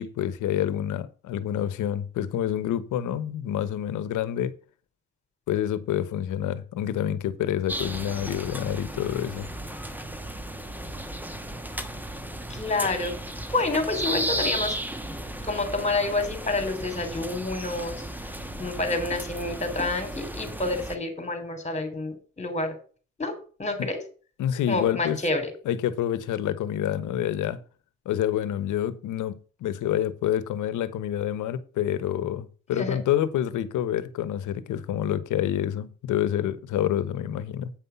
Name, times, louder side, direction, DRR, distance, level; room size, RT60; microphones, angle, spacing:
voice 1, 0.0-4.5 5.5-9.5 23.8-23.9 24.4-25.2 25.6-27.6 28.0-37.7, left 11 dB, 80° left, 1.1 m, -28 dB
sound 1, 7.7-20.9, right 1 dB, 5° right, 1.2 m, -34 dB
voice 2, 12.5-13.2 13.5-14.8 15.4-18.0 18.6-22.8 23.2-23.3 23.6-24.0 24.7-25.5 32.8-33.0, left 2 dB, 20° left, 3.2 m, -28 dB
8.9 x 5.6 x 5.7 m
cardioid pair, 90°, 30 cm